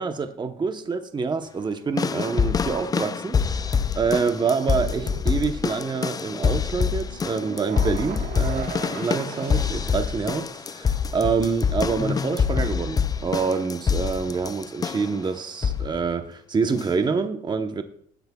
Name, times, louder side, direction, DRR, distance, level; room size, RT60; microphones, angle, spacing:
voice 1, 0.0-3.4 4.0-17.8, right 5 dB, 25° right, 0.9 m, -26 dB
sound 1, 2.0-15.2 15.6-16.0 16.8-16.9, left 6 dB, 20° left, 0.4 m, -26 dB
sound 2, 4.6-11.6, right 7 dB, 65° right, 1.4 m, -39 dB
17.0 x 7.9 x 2.3 m
cardioid pair, 110°, 17 cm